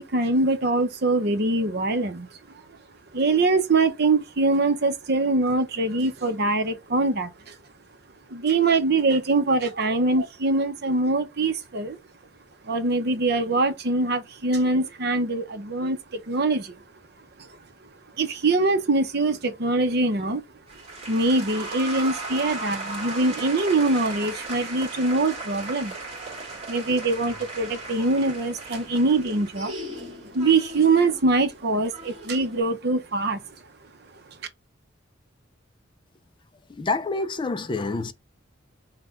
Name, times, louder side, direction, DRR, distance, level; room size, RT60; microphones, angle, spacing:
voice 1, 0.0-2.3 2.5-2.6 3.1-7.6 8.3-12.0 12.6-16.7 17.4-17.5 18.2-20.4 21.1-25.9 26.7-29.7 30.3-33.4, right 3 dB, 55° right, 0.7 m, -23 dB
sound 1, 20.7-32.6, right 2 dB, 35° right, 1.7 m, -37 dB
voice 2, 36.8-38.1, left 3 dB, 25° left, 0.3 m, -27 dB
5.9 x 2.2 x 3.7 m
head